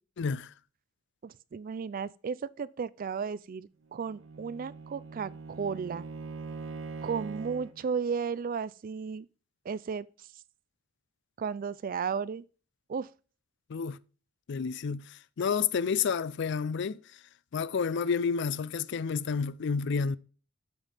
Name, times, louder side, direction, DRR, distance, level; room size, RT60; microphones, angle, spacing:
voice 1, 0.2-0.5 13.7-14.0 14.5-17.0 17.5-20.2, left 6 dB, 60° left, 0.4 m, -30 dB
voice 2, 1.2-6.1 7.0-9.3 9.7-10.1 11.4-12.4 12.9-13.1, right 6 dB, 45° right, 0.4 m, -34 dB
Bowed string instrument, 3.9-7.8, right 4 dB, 80° right, 0.9 m, -42 dB
11.0 x 7.3 x 3.4 m
head